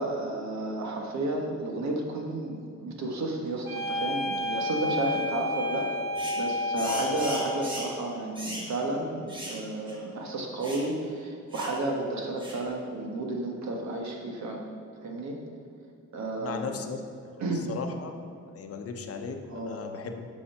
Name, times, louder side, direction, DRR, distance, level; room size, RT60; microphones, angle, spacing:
voice 1, 0.0-5.9 6.4-14.6 15.0-15.4 16.1-16.8 17.4-17.7 19.5-19.8, right 2 dB, 70° right, 0 dB, 1.4 m, -32 dB
sound 1, 3.6-7.8, left 1 dB, 35° right, 2.1 m, -31 dB
sound 2, 6.2-6.4 6.8-8.0 8.4-8.7 9.3-9.6 9.9-10.0 10.6-10.9 11.5-11.8 12.4-12.7, equal, 15° right, 1.3 m, -38 dB
voice 2, 16.4-18.1 18.5-20.3, left 5 dB, 55° left, 5 dB, 0.7 m, -37 dB
8.6 x 5.5 x 5.5 m, 2.5 s
wide cardioid pair, 155°, 29 cm